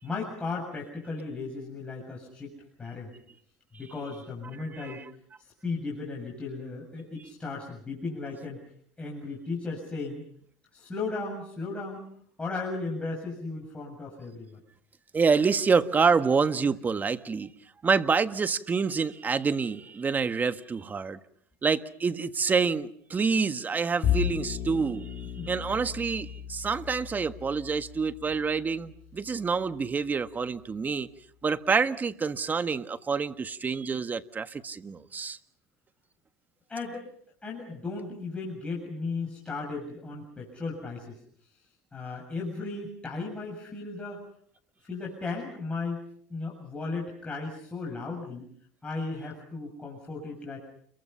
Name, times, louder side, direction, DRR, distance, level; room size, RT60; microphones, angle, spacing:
voice 1, 0.0-2.5 2.8-3.1 3.8-5.0 5.4-8.6 9.0-10.2 10.7-12.1 12.4-14.6 25.4-25.5 36.7-37.1 37.4-41.2 41.9-44.2 44.8-46.0 46.3-48.5 48.8-50.6, left 3 dB, 15° left, -2 dB, 7.5 m, -36 dB
voice 2, 4.7-5.0 15.1-17.5 17.8-21.2 21.6-25.1 25.4-31.1 31.4-35.4, right 5 dB, 25° right, 11 dB, 1.5 m, -27 dB
Bowed string instrument, 24.0-30.5, left 10 dB, 55° left, 2.1 m, -35 dB
29.5 x 23.5 x 5.7 m, 0.63 s
supercardioid pair, 95°, 7 cm